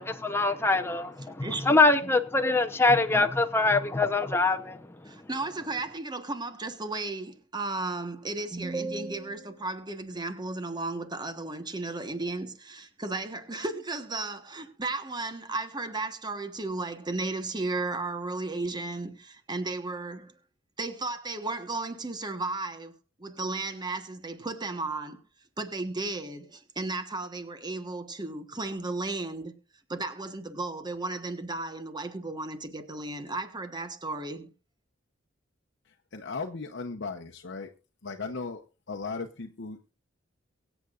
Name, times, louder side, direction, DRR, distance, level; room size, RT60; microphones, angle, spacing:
voice 1, 0.0-4.8, left 3 dB, 10° left, 0.8 m, -24 dB
voice 2, 1.4-2.1 5.0-20.3 20.8-22.9 23.2-25.2 25.6-29.6 29.9-34.5, right 2 dB, 20° right, 1.2 m, -34 dB
voice 3, 36.1-37.7 38.0-39.8, left 4 dB, 60° left, 0.9 m, -36 dB
23.5 x 8.1 x 2.5 m
head